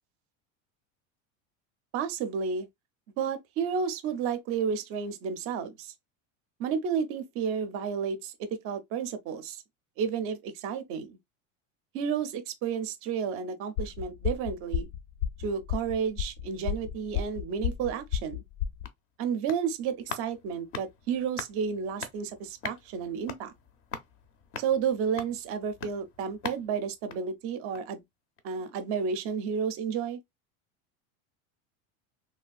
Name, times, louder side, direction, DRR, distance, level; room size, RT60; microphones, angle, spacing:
voice 1, 1.9-2.7 3.2-5.9 6.6-9.6 10.0-11.2 11.9-14.9 15.4-18.4 19.2-23.5 24.6-28.0 28.4-30.2, right 6 dB, 35° right, 0.4 m, -31 dB
sound 1, 13.8-18.9, left 9 dB, 85° left, 0.5 m, -31 dB
sound 2, 18.5-28.0 28.4-28.5, left 6 dB, 35° left, 0.4 m, -43 dB
3.2 x 2.5 x 2.2 m
supercardioid pair, 155°, 41 cm